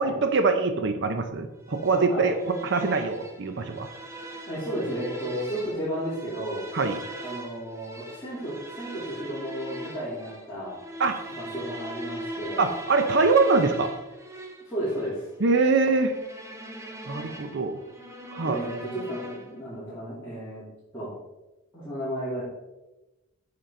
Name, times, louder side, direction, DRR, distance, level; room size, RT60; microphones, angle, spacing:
voice 1, 0.0-3.9 6.7-7.0 11.0-11.2 12.6-13.9 15.4-16.1 17.1-17.8 18.3-18.6, right 4 dB, 55° right, 7 dB, 0.6 m, -23 dB
sound 1, 1.7-19.7, right 1 dB, 15° right, 0.8 m, -40 dB
voice 2, 4.5-6.6 7.2-10.8 11.3-12.7 14.6-15.3 18.4-20.6 20.9-21.1 21.7-22.4, equal, 10° left, -13 dB, 3.2 m, -33 dB
8.9 x 6.9 x 3.8 m, 1.0 s
head